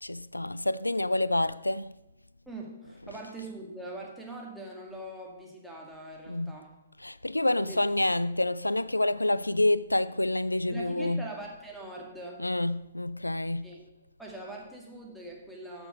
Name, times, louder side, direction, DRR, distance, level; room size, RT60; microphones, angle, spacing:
voice 1, 0.0-1.9 2.8-3.2 6.3-6.6 7.0-11.3 12.4-13.7, left 1 dB, 85° left, 0.4 m, -28 dB
voice 2, 2.5-6.7 7.5-7.8 10.7-12.4 13.6-13.8 14.2-15.9, right 2 dB, ahead, 2.1 m, -42 dB
14.0 x 6.0 x 5.1 m
figure-of-eight pair, 125°, 0 cm